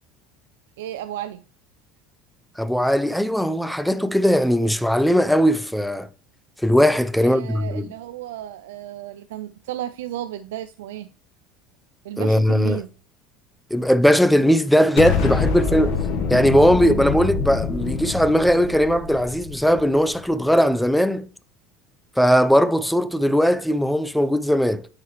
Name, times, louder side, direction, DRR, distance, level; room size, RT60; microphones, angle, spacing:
voice 1, 0.8-1.4 7.2-11.1 12.0-12.9, right 12 dB, 85° right, 0.3 m, -33 dB
voice 2, 2.6-6.1 6.6-7.9 12.2-12.8 13.7-16.0 16.3-21.3 22.2-24.9, equal, ahead, 0.5 m, -19 dB
Explosion, 15.0-20.1, left 5 dB, 70° left, 1.2 m, -25 dB
9.4 x 3.8 x 3.0 m
hypercardioid pair, 90°, 0 cm